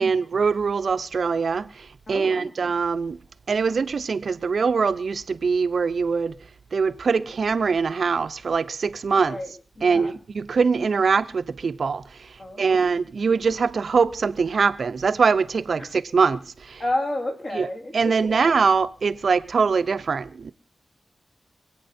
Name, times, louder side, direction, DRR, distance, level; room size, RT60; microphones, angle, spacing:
voice 1, 0.0-3.2 3.5-6.3 6.7-9.4 9.8-12.0 12.6-16.8 17.5-17.7 17.9-20.5, right 5 dB, 70° right, 0.6 m, -23 dB
voice 2, 2.1-2.5 9.3-10.2 12.4-12.9 15.8-15.9 16.8-18.4, left 1 dB, 50° left, 3.8 m, -31 dB
25.5 x 8.7 x 4.3 m
wide cardioid pair, 100°, 0 cm